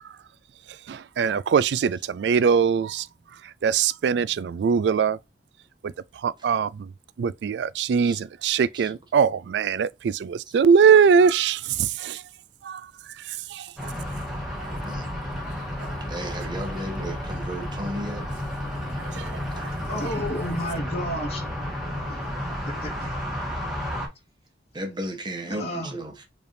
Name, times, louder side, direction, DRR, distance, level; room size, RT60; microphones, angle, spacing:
voice 1, 0.9-3.1 3.4-5.2 5.8-6.9 7.2-12.2 12.6-12.9 13.2-13.7 14.6-14.7 15.8-15.9 19.0-19.8, right 6 dB, 75° right, 0.3 m, -22 dB
sound 1, 13.8-24.1, left 1 dB, 5° right, 1.5 m, -32 dB
voice 2, 16.1-18.2 19.5-19.7 24.7-26.3, right 1 dB, 25° right, 0.9 m, -34 dB
voice 3, 19.9-21.5 22.1-22.2 22.7-22.9 25.5-25.9, equal, 35° left, 1.7 m, -31 dB
4.8 x 3.4 x 2.5 m
head